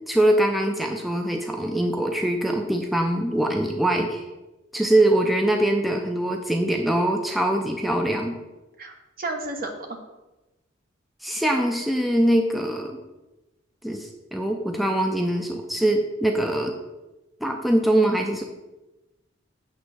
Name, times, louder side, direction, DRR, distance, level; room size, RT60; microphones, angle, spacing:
voice 1, 0.1-4.2 4.7-8.4 11.2-13.0 13.8-16.8 17.4-18.4, right 1 dB, ahead, 2 dB, 0.5 m, -23 dB
voice 2, 8.8-9.9, right 2 dB, 50° right, 4 dB, 1.1 m, -32 dB
8.2 x 3.6 x 6.5 m, 1.0 s
head